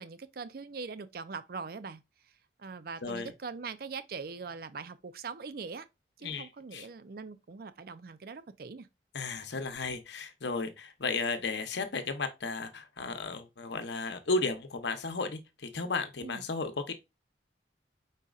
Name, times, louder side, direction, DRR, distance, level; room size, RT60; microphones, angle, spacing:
voice 1, 0.0-2.3 2.6-5.9 6.2-8.9 16.2-16.4, right 4 dB, 55° right, 0.4 m, -42 dB
voice 2, 3.0-3.3 6.2-6.9 9.1-16.9, left 3 dB, 70° left, 0.8 m, -34 dB
5.2 x 4.1 x 2.4 m
head